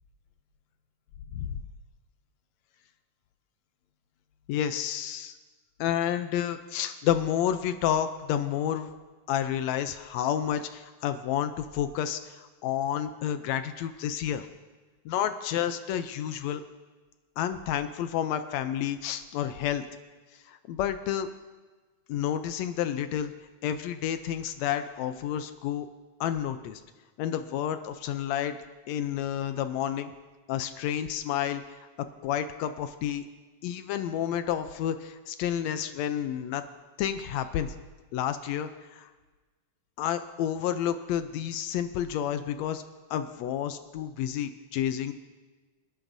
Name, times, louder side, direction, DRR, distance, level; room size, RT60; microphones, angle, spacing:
voice 1, 4.5-5.3 5.8-8.9 9.3-14.5 15.0-16.6 17.4-19.8 20.5-21.3 22.1-23.3 23.6-25.9 26.2-26.8 27.2-28.6 28.9-30.1 30.5-31.8 32.2-33.2 33.6-36.6 37.0-37.7 38.1-39.1 40.0-42.8 43.1-45.1, left 10 dB, 75° left, 10 dB, 1.7 m, -30 dB
26.5 x 11.0 x 2.7 m, 1.3 s
omnidirectional pair, 3.5 m